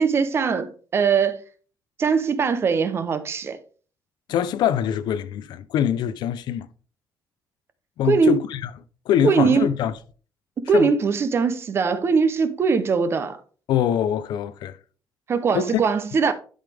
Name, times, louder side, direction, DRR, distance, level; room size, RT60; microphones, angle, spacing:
voice 1, 0.0-1.4 2.0-3.6 8.0-8.4 9.2-9.7 10.6-13.4 15.3-16.3, right 5 dB, 35° right, 0.8 m, -21 dB
voice 2, 4.3-6.7 8.0-8.7 9.1-9.9 10.7-10.9 13.7-14.8 15.5-15.7, left 9 dB, 85° left, 0.6 m, -23 dB
11.5 x 5.2 x 3.4 m
cardioid pair, 175°, 7 cm